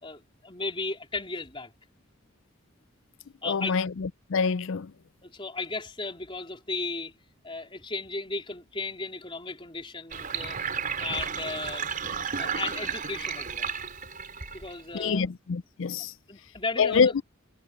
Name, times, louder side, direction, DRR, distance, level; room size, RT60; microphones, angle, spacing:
voice 1, 0.0-1.7 3.4-3.8 5.2-7.1 7.4-11.9 12.4-13.7 14.5-15.3 16.3-17.2, left 3 dB, 25° left, 3.9 m, -35 dB
voice 2, 3.4-4.9 14.9-16.1 16.8-17.2, left 5 dB, 65° left, 0.5 m, -26 dB
Sink (filling or washing), 10.1-15.0, right 6 dB, 40° right, 4.9 m, -33 dB
head